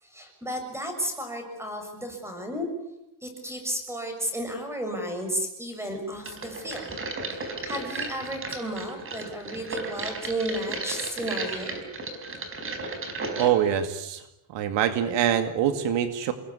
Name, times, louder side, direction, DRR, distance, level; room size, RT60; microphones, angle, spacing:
voice 1, 0.0-2.7 3.2-7.0 7.3-11.8, equal, 5° right, 5 dB, 6.7 m, -33 dB
sound 1, 6.3-13.5, right 3 dB, 25° right, 4.7 m, -34 dB
voice 2, 13.3-14.2 14.5-16.3, right 9 dB, 65° right, 8 dB, 2.4 m, -24 dB
29.0 x 21.5 x 9.7 m, 0.87 s
cardioid pair, 175°, 48 cm